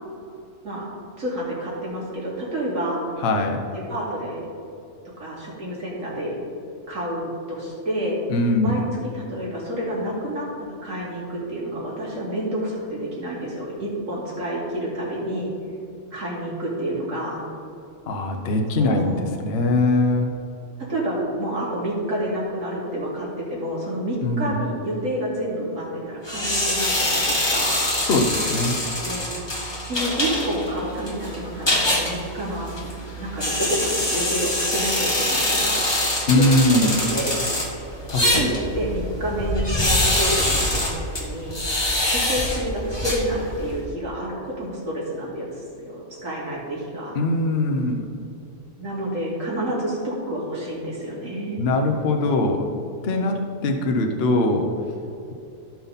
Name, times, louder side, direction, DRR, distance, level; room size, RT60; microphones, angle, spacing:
voice 1, 1.2-3.0 3.9-4.5 5.2-6.4 6.9-8.2 8.6-15.5 16.1-17.4 18.8-19.3 20.8-27.8 29.0-29.3 29.8-32.7 33.2-36.4 36.7-37.5 38.2-40.9 41.2-41.6 42.1-47.2 48.8-51.6, right 1 dB, 85° right, -6 dB, 3.0 m, -29 dB
voice 2, 3.2-3.6 8.3-8.8 18.1-20.3 24.2-24.5 28.0-28.8 36.3-37.0 38.1-38.5 47.1-48.0 51.6-52.7 53.0-54.7, left 2 dB, 55° left, 3 dB, 1.0 m, -21 dB
sound 1, 26.3-43.8, left 1 dB, 20° left, 1.5 m, -24 dB
15.5 x 5.6 x 4.0 m, 2.7 s
omnidirectional pair, 1.3 m